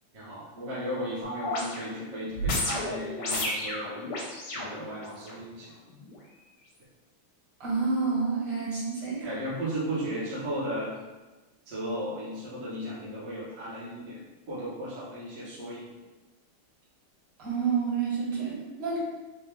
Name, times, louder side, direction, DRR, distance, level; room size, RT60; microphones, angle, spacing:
voice 1, 0.1-4.1 4.4-5.7 9.2-10.9 11.7-14.2 14.5-15.9, equal, 45° right, -8 dB, 1.0 m, -35 dB
sound 1, 1.2-5.4 6.0-6.1, left 1 dB, 80° left, 1.7 m, -33 dB
voice 2, 7.6-9.3 17.4-19.0, right 5 dB, 60° right, -7 dB, 2.1 m, -29 dB
4.3 x 2.4 x 3.3 m, 1.2 s
omnidirectional pair, 2.4 m